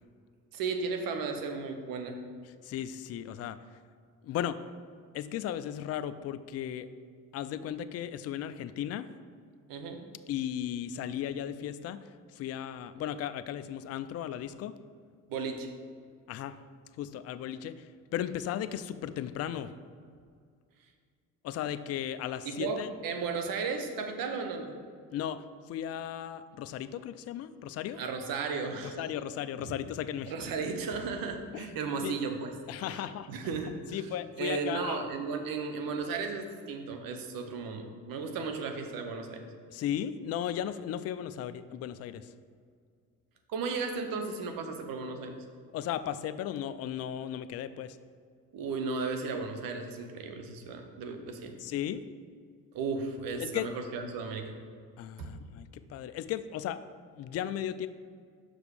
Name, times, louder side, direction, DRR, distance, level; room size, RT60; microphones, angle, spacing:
voice 1, 0.5-2.2 9.7-10.0 15.3-15.7 22.4-24.8 28.0-29.1 30.3-32.5 32.9-34.0 34.4-39.4 43.5-45.4 48.5-51.6 52.7-54.6 55.2-55.3, right 4 dB, 65° right, 5 dB, 1.0 m, -35 dB
voice 2, 2.6-3.6 4.2-4.6 5.1-6.9 7.3-9.1 10.3-14.8 16.3-16.6 17.0-19.7 21.4-22.9 25.1-28.0 29.0-30.3 31.5-31.7 32.0-32.2 32.7-33.3 33.9-35.1 39.7-42.3 45.7-48.0 51.6-52.0 53.4-53.7 55.0-56.8 57.1-57.9, left 10 dB, 45° left, 12 dB, 0.4 m, -36 dB
6.1 x 5.1 x 4.8 m, 2.1 s
supercardioid pair, 70°, 36 cm